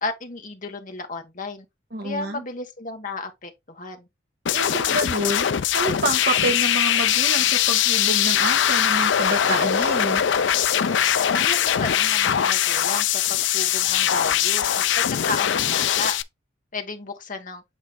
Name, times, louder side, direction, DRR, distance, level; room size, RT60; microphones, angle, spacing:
voice 1, 0.0-1.6 2.0-4.1 11.3-16.2 16.7-17.6, left 3 dB, 45° left, 1.3 m, -33 dB
voice 2, 1.9-2.4 4.5-5.5 5.7-10.2, right 2 dB, 55° right, 1.5 m, -28 dB
sound 1, 4.5-16.2, left 10 dB, 65° left, 0.4 m, -21 dB
8.2 x 3.1 x 3.9 m
head